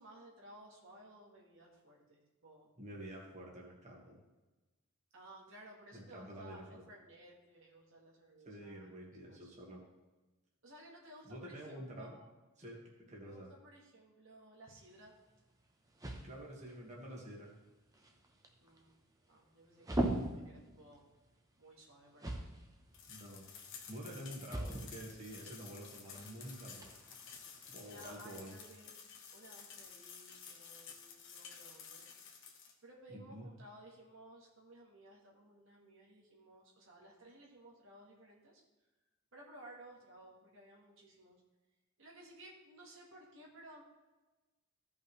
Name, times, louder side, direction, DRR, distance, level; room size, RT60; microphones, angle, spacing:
voice 1, 0.0-2.7 5.1-8.9 9.3-9.5 10.6-12.3 13.2-15.1 18.6-19.0 19.3-21.0 21.6-22.4 27.8-28.9 29.3-32.0 32.8-38.6 39.3-41.4 42.0-43.8, right 1 dB, 65° right, -2 dB, 1.8 m, -57 dB
voice 2, 2.8-4.2 5.9-6.8 8.4-9.8 11.2-12.1 12.6-13.5 16.2-17.5 23.1-26.9 27.7-28.6 33.1-33.5, right 1 dB, 35° right, -3 dB, 1.8 m, -49 dB
sound 1, 14.7-28.1, right 1 dB, 15° right, 1.0 m, -44 dB
sound 2, 22.9-32.7, left 6 dB, 60° left, 1.3 m, -53 dB
15.0 x 5.6 x 3.3 m, 1.2 s
head